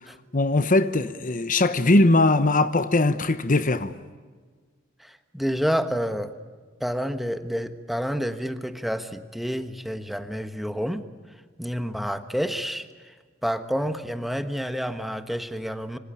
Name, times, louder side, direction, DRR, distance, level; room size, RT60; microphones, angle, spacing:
voice 1, 0.3-3.9, left 2 dB, 40° left, 1.0 m, -20 dB
voice 2, 5.0-6.3 6.8-11.1 11.6-13.1 13.4-16.0, equal, ahead, 1.3 m, -29 dB
26.5 x 25.5 x 8.7 m
head